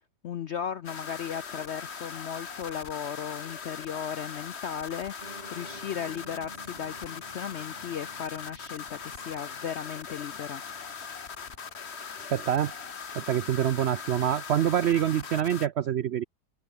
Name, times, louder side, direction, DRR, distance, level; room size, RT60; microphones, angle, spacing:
voice 1, 0.2-10.6, left 8 dB, 65° left, 0.6 m, -36 dB
sound 1, 0.8-15.7, left 6 dB, 40° left, 1.5 m, -40 dB
Piano, 5.2-11.8, right 1 dB, 25° right, 4.2 m, -52 dB
sound 2, 9.8-15.7, right 2 dB, 55° right, 7.6 m, -65 dB
voice 2, 12.3-12.7 13.1-16.2, right 10 dB, 75° right, 0.6 m, -26 dB
omnidirectional pair, 1.8 m